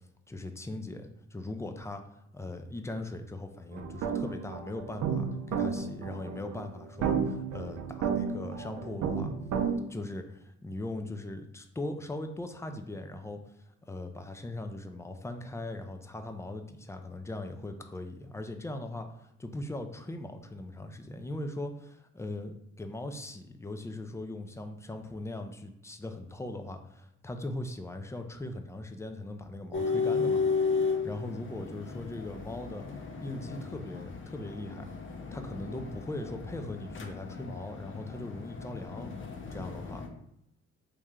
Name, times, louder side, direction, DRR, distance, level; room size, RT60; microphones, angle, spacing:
voice 1, 0.3-2.0 2.3-9.3 9.9-13.4 13.9-30.4 31.0-32.9 33.2-34.9 35.3-39.2 39.5-40.1, left 2 dB, 10° left, 6 dB, 0.4 m, -39 dB
sound 1, 3.7-9.8, right 6 dB, 65° right, 0.5 m, -32 dB
sound 2, 29.7-40.1, left 5 dB, 40° left, 0.6 m, -34 dB
3.2 x 2.8 x 3.6 m, 0.77 s
cardioid pair, 90°, 30 cm